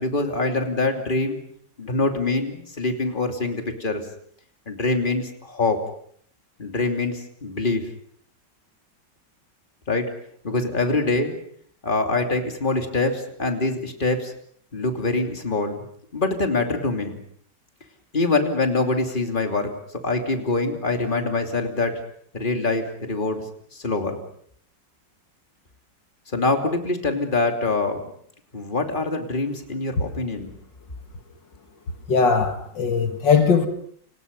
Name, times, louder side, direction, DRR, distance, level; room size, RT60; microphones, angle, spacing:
voice 1, 0.0-1.4 1.8-4.0 4.7-5.8 6.6-7.8 9.9-10.1 10.4-11.3 11.8-14.3 14.7-15.9 16.1-17.2 18.1-19.7 20.0-21.9 22.3-23.4 23.7-24.2 26.3-28.1 28.5-30.5, left 3 dB, 25° left, 3.1 m, -24 dB
voice 2, 32.1-33.7, left 5 dB, 75° left, 2.6 m, -19 dB
29.5 x 28.0 x 5.5 m
omnidirectional pair, 2.0 m